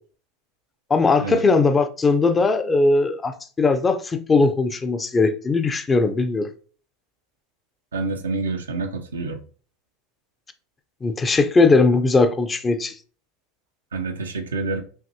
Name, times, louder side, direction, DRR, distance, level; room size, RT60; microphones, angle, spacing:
voice 1, 0.9-3.3 3.6-6.5 11.0-12.9, left 3 dB, 20° left, 0.5 m, -19 dB
voice 2, 7.9-9.4 13.9-14.8, right 3 dB, 90° right, 0.6 m, -27 dB
5.6 x 2.6 x 2.7 m
hypercardioid pair, 90°, 0 cm